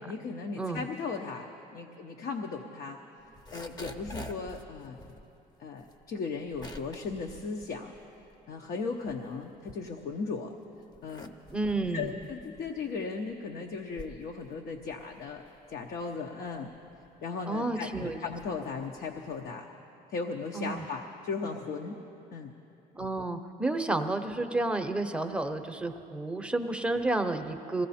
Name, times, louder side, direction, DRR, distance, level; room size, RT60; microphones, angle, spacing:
voice 1, 0.0-3.0 3.5-5.0 5.6-7.9 8.5-10.5 11.0-11.3 11.9-15.4 15.7-16.7 17.2-19.7 20.1-22.0 22.3-22.5, left 4 dB, 60° left, 3 dB, 0.8 m, -37 dB
sound 1, 3.2-8.5 8.9-10.3 10.8-19.5, left 1 dB, 25° left, 0.8 m, -48 dB
voice 2, 11.5-12.1 17.5-18.2 20.5-20.8 22.9-27.9, right 2 dB, 5° right, 5 dB, 0.7 m, -31 dB
20.5 x 16.0 x 4.2 m, 2.9 s
cardioid pair, 110°, 17 cm